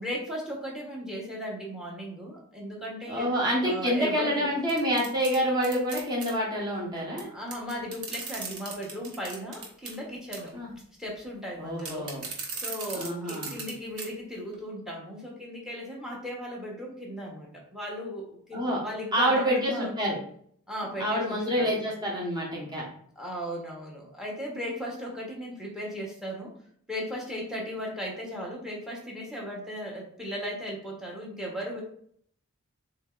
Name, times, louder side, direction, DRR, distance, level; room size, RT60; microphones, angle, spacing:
voice 1, 0.0-3.3 3.6-4.5 7.3-10.6 11.0-12.1 12.6-19.9 20.7-21.8 23.2-26.5 26.9-31.8, equal, 5° right, -2 dB, 1.0 m, -36 dB
voice 2, 3.0-7.3 10.5-10.7 11.6-12.3 12.9-13.6 18.5-18.8 19.1-20.2 21.0-22.9, equal, 20° right, -4 dB, 1.1 m, -27 dB
sound 1, 4.7-6.3 7.2-7.3 7.5-10.0 10.3-10.6 11.8-13.7 14.0-14.1 14.5-14.6, right 4 dB, 85° right, 1.1 m, -38 dB
6.9 x 2.9 x 2.4 m, 0.63 s
head